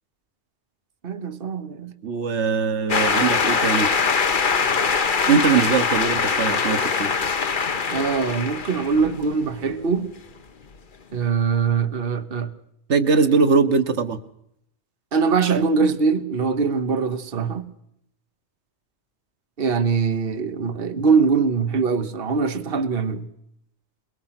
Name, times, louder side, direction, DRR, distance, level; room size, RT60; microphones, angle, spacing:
voice 1, 1.0-1.9 7.9-10.1 11.1-12.5 15.1-17.7 19.6-23.2, right 5 dB, 55° right, 1.4 m, -22 dB
voice 2, 2.0-3.9 5.3-7.1 12.9-14.2, right 5 dB, 85° right, 1.5 m, -21 dB
sound 1, 2.9-9.7, left 5 dB, 50° left, 1.2 m, -22 dB
22.5 x 22.0 x 5.9 m
omnidirectional pair, 1.1 m